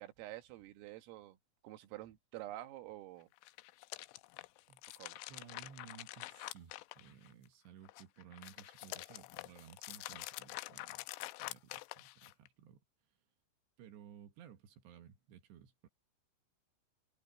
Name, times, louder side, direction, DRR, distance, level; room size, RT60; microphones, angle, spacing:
voice 1, 0.0-1.4 1.6-3.3 5.0-5.2, right 15 dB, 90° right, 4.3 m, -48 dB
sound 1, 3.3-7.5 7.8-12.5, left 19 dB, 85° left, 3.0 m, -47 dB
voice 2, 5.3-12.8 13.8-15.9, right 8 dB, 65° right, 3.5 m, -57 dB
omnidirectional pair, 5.8 m